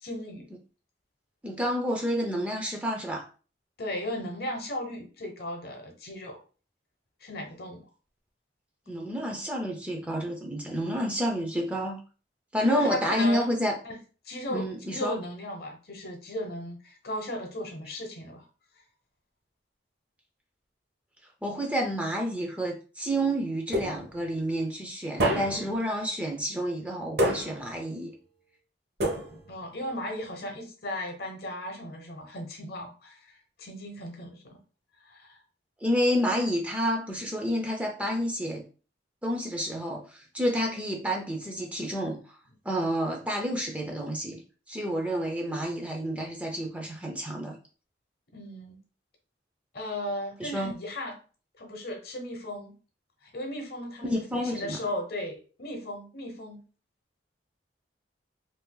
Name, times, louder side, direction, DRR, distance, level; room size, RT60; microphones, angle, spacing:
voice 1, 0.0-0.5 3.8-6.4 7.2-7.8 12.6-13.5 13.8-14.0 14.2-18.4 29.5-34.6 35.0-35.4 48.3-48.8 49.7-51.2 51.6-52.7 53.2-56.6, left 1 dB, 55° left, 2 dB, 0.9 m, -36 dB
voice 2, 1.4-3.3 8.9-12.0 12.5-13.7 14.5-15.2 21.4-28.1 35.8-38.6 39.2-42.2 42.6-44.4 44.7-47.6 50.4-50.7 54.0-54.8, equal, 10° right, 0 dB, 0.5 m, -29 dB
sound 1, 23.7-24.3 25.2-25.8 27.2-27.8 29.0-29.6, right 1 dB, 60° right, 1.0 m, -28 dB
2.6 x 2.4 x 3.7 m, 0.37 s
head